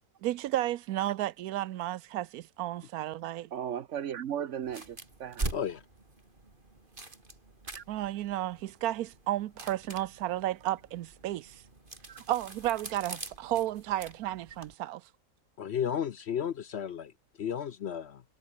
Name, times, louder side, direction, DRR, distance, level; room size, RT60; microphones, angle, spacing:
voice 1, 0.2-3.5 7.9-11.6 12.3-15.0, right 14 dB, 85° right, 1.1 m, -33 dB
voice 2, 3.5-5.5 7.7-7.8 12.1-12.2, right 9 dB, 60° right, 1.1 m, -36 dB
sound 1, 4.6-14.7, right 2 dB, 35° right, 3.3 m, -43 dB
voice 3, 5.5-5.8 15.6-17.1 17.4-18.2, left 8 dB, 55° left, 0.8 m, -33 dB
omnidirectional pair, 1.5 m